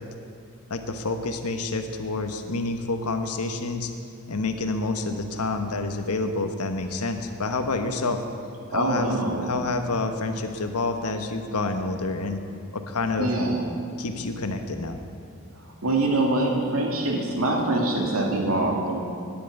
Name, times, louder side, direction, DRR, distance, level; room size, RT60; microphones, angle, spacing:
voice 1, 0.7-3.9 4.3-8.2 8.7-9.1 9.4-12.4 12.7-13.3 14.0-15.0, left 3 dB, 85° left, 6 dB, 1.1 m, -28 dB
voice 2, 8.7-9.5 13.2-13.7 15.8-19.0, right 2 dB, 70° right, 0 dB, 2.3 m, -24 dB
10.5 x 8.8 x 9.2 m, 2.4 s
head